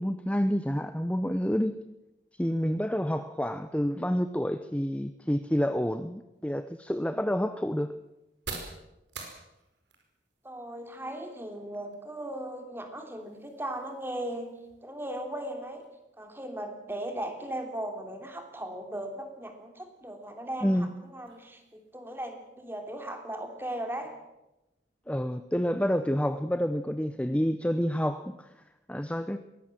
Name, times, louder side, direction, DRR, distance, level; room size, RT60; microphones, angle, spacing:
voice 1, 0.0-1.8 2.4-7.9 20.6-20.9 25.1-28.5 28.9-29.4, equal, 5° left, 10 dB, 0.6 m, -28 dB
sound 1, 6.3-23.9, right 4 dB, 80° right, 4.9 m, -51 dB
voice 2, 10.4-14.5 14.8-15.8 16.2-24.2, right 1 dB, 10° right, 5 dB, 2.9 m, -37 dB
22.0 x 17.5 x 7.5 m, 0.95 s
head